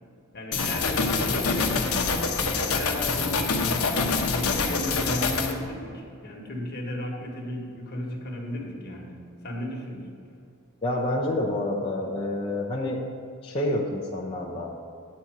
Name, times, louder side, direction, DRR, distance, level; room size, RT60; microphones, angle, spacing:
voice 1, 0.3-9.2 9.4-10.1, left 1 dB, 50° left, -1 dB, 1.6 m, -34 dB
sound 1, 0.5-5.5, left 4 dB, 80° left, 1.0 m, -26 dB
voice 2, 10.8-13.0 13.4-14.7, left 1 dB, 25° left, -6 dB, 0.8 m, -28 dB
9.5 x 4.3 x 7.5 m, 2.4 s
head